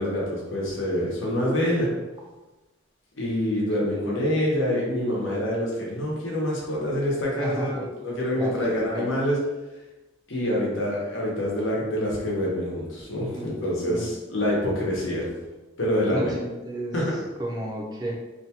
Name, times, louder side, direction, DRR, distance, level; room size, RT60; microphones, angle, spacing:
voice 1, 0.0-1.9 3.1-9.4 10.3-15.3 15.8-16.3 16.9-17.1, equal, 85° left, -4 dB, 0.9 m, -26 dB
voice 2, 3.9-4.2 7.4-7.9 8.3-9.1 13.4-14.1 16.1-17.0 17.4-18.1, equal, 20° right, -1 dB, 0.4 m, -33 dB
2.6 x 2.3 x 2.8 m, 1.1 s
head